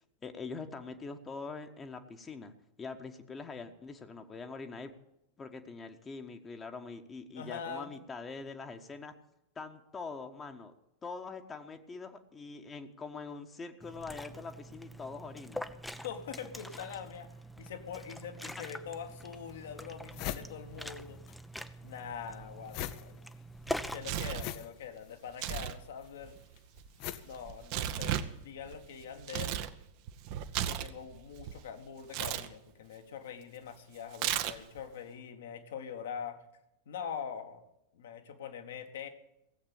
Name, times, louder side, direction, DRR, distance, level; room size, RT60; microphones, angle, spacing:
voice 1, 0.2-2.5 2.8-4.9 5.4-9.1 9.5-10.7 11.0-15.8, left 4 dB, 20° left, 5 dB, 1.3 m, -43 dB
voice 2, 7.3-7.9 16.0-21.2 21.8-23.2 23.9-26.4 27.2-29.6 30.6-36.4 36.8-37.6 37.9-39.1, left 7 dB, 60° left, 6 dB, 1.7 m, -43 dB
Liquid, 13.8-24.1, equal, ahead, 0.7 m, -44 dB
sound 1, 18.9-19.0 19.5-19.6 19.8-21.4 21.6-28.2, left 12 dB, 40° left, 0.8 m, -43 dB
Tearing, 23.7-24.5 25.3-25.8 26.0-29.7 30.1-31.6 32.1-32.5 34.1-34.8, right 11 dB, 45° right, 1.0 m, -35 dB
17.0 x 8.1 x 8.6 m, 0.84 s
figure-of-eight pair, 90°, 0 cm